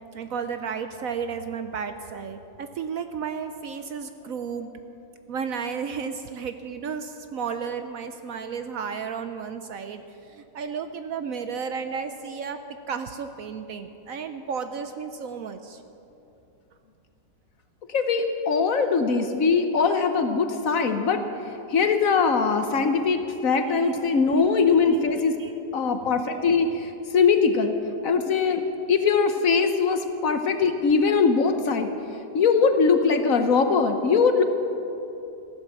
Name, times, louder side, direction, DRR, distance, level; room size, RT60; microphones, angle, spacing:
voice 1, 0.1-4.7 5.3-12.6 12.9-15.8 23.8-23.9 25.4-25.5, right 6 dB, 65° right, 8 dB, 0.9 m, -33 dB
voice 2, 17.9-21.2 21.7-25.3 25.7-27.8 28.0-31.9 32.3-34.4, left 5 dB, 55° left, 7 dB, 1.2 m, -21 dB
15.5 x 11.5 x 7.5 m, 2.8 s
omnidirectional pair, 1.8 m